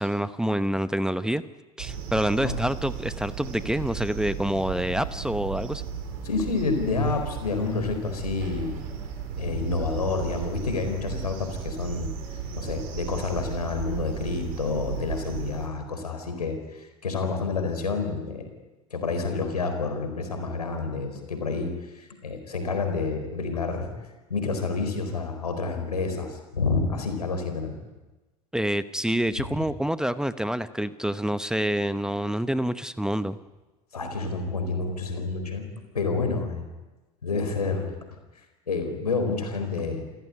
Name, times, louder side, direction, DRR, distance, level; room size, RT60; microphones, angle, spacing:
voice 1, 0.0-1.4 1.8-5.8 28.5-33.4, right 1 dB, 5° right, 13 dB, 1.0 m, -27 dB
sound 1, 1.8-15.7, right 8 dB, 65° right, 4.6 m, -35 dB
voice 2, 6.2-8.8 9.4-12.1 12.5-18.5 18.9-23.9 24.3-27.7 33.9-35.7 35.9-36.7 37.2-37.9 38.7-40.1, left 4 dB, 90° left, 6 dB, 4.3 m, -29 dB
28.5 x 15.5 x 9.9 m, 1.1 s
hypercardioid pair, 75°, 19 cm